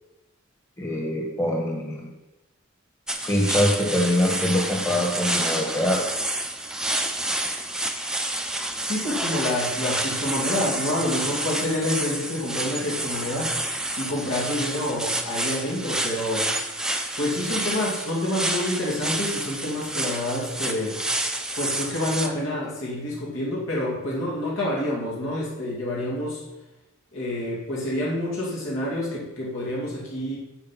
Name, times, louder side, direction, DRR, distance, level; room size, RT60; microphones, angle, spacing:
voice 1, 0.8-2.1 3.2-6.0, left 1 dB, 15° left, -2 dB, 1.5 m, -24 dB
sound 1, 3.1-22.3, right 1 dB, 5° right, 0.7 m, -29 dB
voice 2, 8.9-16.5 17.2-21.0 21.6-26.4 27.1-30.4, left 1 dB, 70° left, -5 dB, 2.7 m, -28 dB
8.7 x 7.9 x 5.9 m, 1.0 s
head